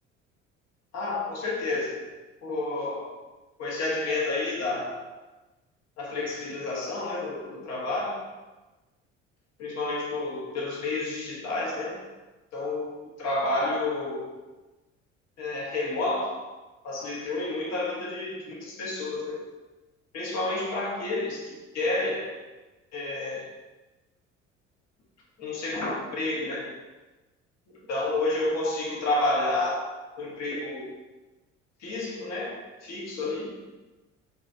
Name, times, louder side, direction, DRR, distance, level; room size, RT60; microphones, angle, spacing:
voice 1, 0.9-2.1 2.4-3.2 3.6-4.9 6.0-8.2 9.6-12.0 12.5-14.3 15.4-16.4 16.8-19.4 20.1-22.4 22.9-23.5 25.4-26.8 27.9-29.9 30.2-31.0 31.8-33.6, left 2 dB, 45° left, -3 dB, 1.1 m, -30 dB
4.4 x 3.1 x 2.7 m, 1.1 s
figure-of-eight pair, 55°, 38 cm